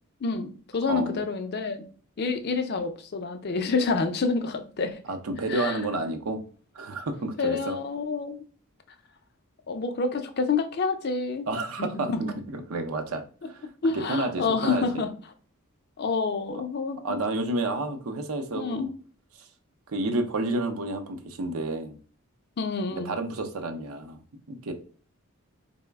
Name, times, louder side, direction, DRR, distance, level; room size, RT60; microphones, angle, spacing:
voice 1, 0.2-1.9 2.2-5.0 5.5-5.8 7.4-8.4 9.7-11.5 11.8-12.4 13.8-15.1 16.0-17.0 18.6-18.9 22.6-23.1, left 4 dB, 45° left, 0.4 m, -28 dB
voice 2, 5.1-6.4 6.7-7.8 11.5-13.7 14.1-15.1 17.0-18.9 19.9-22.0 22.9-24.7, right 2 dB, 75° right, 0.6 m, -30 dB
3.9 x 2.1 x 3.4 m
head